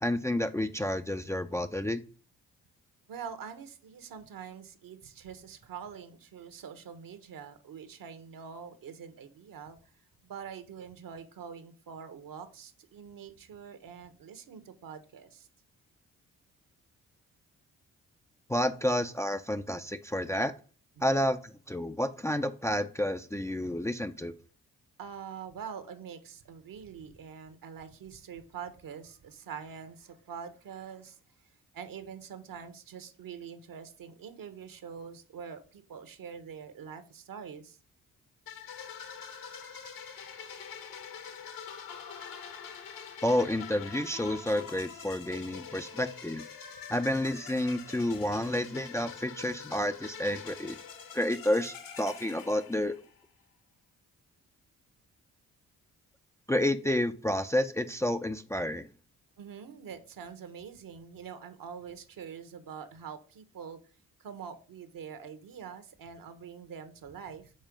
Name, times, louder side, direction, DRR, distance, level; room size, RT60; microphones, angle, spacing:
voice 1, 0.0-2.0 18.5-20.5 21.0-24.3 43.2-46.4 46.9-50.8 51.1-52.9 56.5-58.9, left 1 dB, 5° left, 0.5 m, -30 dB
voice 2, 3.1-9.8 10.2-15.5 21.0-21.2 25.0-31.2 31.7-37.8 59.4-63.8 64.2-67.5, right 7 dB, 60° right, 1.2 m, -45 dB
sound 1, 38.5-53.2, left 7 dB, 60° left, 1.3 m, -45 dB
5.5 x 4.4 x 5.1 m
hypercardioid pair, 40°, 39 cm